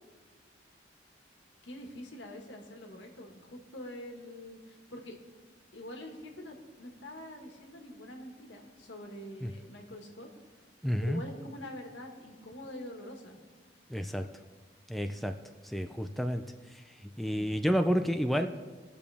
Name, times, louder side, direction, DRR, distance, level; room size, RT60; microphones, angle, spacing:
voice 1, 1.6-5.2 5.7-10.3 11.0-13.4, left 1 dB, 90° left, 2 dB, 1.8 m, -45 dB
voice 2, 10.8-11.2 13.9-14.3 14.9-15.3 15.6-16.4 17.2-18.5, equal, ahead, 6 dB, 0.4 m, -29 dB
21.0 x 7.0 x 3.5 m, 1.4 s
head